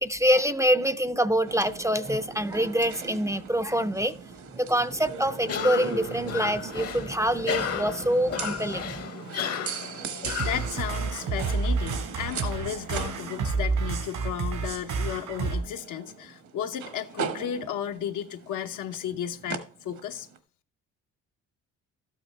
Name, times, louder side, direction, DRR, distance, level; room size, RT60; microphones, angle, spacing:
voice 1, 0.0-4.1 4.5-9.0, equal, 10° right, 0.4 m, -25 dB
sound 1, 1.5-20.4, right 6 dB, 70° right, 1.3 m, -40 dB
Cough, 5.4-11.2, left 7 dB, 55° left, 0.9 m, -33 dB
sound 2, 10.2-15.6, right 4 dB, 90° right, 3.2 m, -29 dB
voice 2, 10.4-20.3, left 9 dB, 85° left, 0.9 m, -34 dB
12.5 x 8.7 x 3.2 m
cardioid pair, 90°, 30 cm